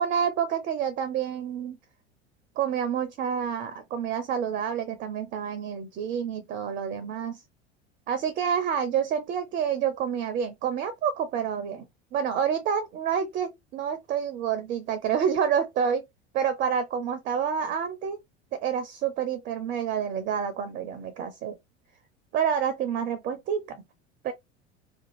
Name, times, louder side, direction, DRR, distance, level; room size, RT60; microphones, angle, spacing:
voice 1, 0.0-1.8 2.6-7.4 8.1-11.9 12.1-16.0 16.3-18.2 18.5-21.5 22.3-23.8 24.2-24.3, right 8 dB, 25° right, 0.4 m, -28 dB
2.6 x 2.4 x 2.9 m
figure-of-eight pair, 75°, 35 cm